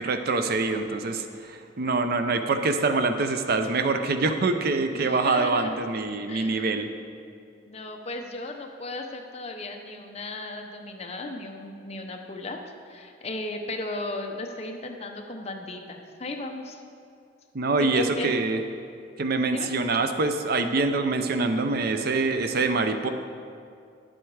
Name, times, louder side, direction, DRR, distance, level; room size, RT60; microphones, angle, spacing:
voice 1, 0.0-6.9 17.5-18.6 19.2-23.1, right 3 dB, 60° right, 8 dB, 0.6 m, -25 dB
voice 2, 4.9-5.7 6.3-6.6 7.7-12.6 12.9-16.8 17.8-18.3 19.5-19.7, left 2 dB, 35° left, 3 dB, 0.8 m, -36 dB
9.8 x 7.8 x 4.7 m, 2.4 s
head